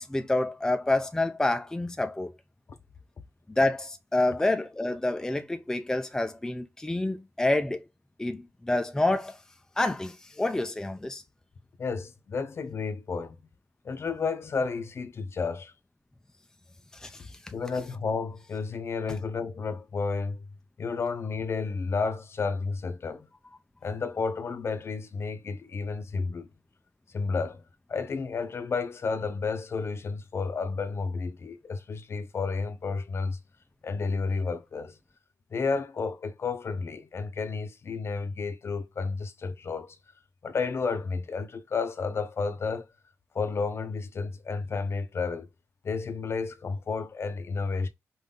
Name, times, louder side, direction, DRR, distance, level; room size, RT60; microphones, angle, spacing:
voice 1, 0.0-2.3 3.5-7.8 8.2-9.4 9.8-11.2 16.9-17.3, left 2 dB, 10° left, 0.5 m, -28 dB
voice 2, 11.8-13.4 13.8-15.7 17.5-20.5 20.8-23.3 23.8-26.5 27.1-27.6 27.9-33.4 33.8-35.0 35.5-40.0 40.4-42.9 43.3-45.5 45.8-47.9, left 4 dB, 50° left, 0.7 m, -31 dB
5.4 x 2.6 x 3.8 m
wide cardioid pair, 110°, 6 cm